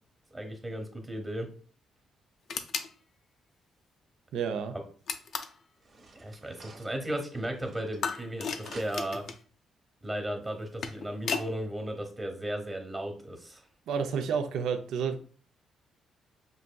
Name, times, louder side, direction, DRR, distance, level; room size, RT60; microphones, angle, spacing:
voice 1, 0.3-1.5 6.1-9.2 10.0-13.6, right 1 dB, 15° right, 4 dB, 1.0 m, -35 dB
sound 1, 2.5-2.9 5.1-5.6 8.0-9.4 10.5-11.5, left 6 dB, 60° left, 0.4 m, -35 dB
voice 2, 4.3-4.8 13.9-15.2, right 6 dB, 80° right, 7 dB, 0.4 m, -30 dB
sound 2, 5.8-8.3 8.6-9.3, right 2 dB, 50° right, 0.9 m, -51 dB
5.5 x 2.6 x 2.3 m, 0.43 s
cardioid pair, 90°, 0 cm